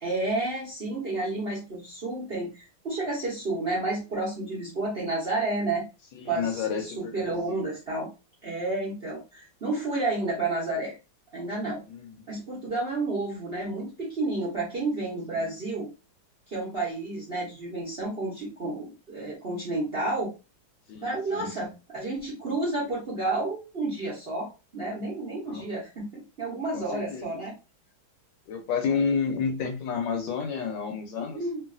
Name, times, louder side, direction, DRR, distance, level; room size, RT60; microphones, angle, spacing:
voice 1, 0.0-5.8 6.3-8.1 8.4-10.9 11.3-11.8 12.3-15.9 16.5-20.3 21.0-27.5 31.3-31.6, right 2 dB, 50° right, -5 dB, 0.7 m, -31 dB
voice 2, 6.2-7.6 11.9-12.1 15.3-15.5 20.9-21.5 25.5-25.6 26.7-27.3 28.5-31.4, left 6 dB, 70° left, 3 dB, 1.2 m, -30 dB
3.1 x 2.5 x 2.4 m, 0.29 s
omnidirectional pair, 2.3 m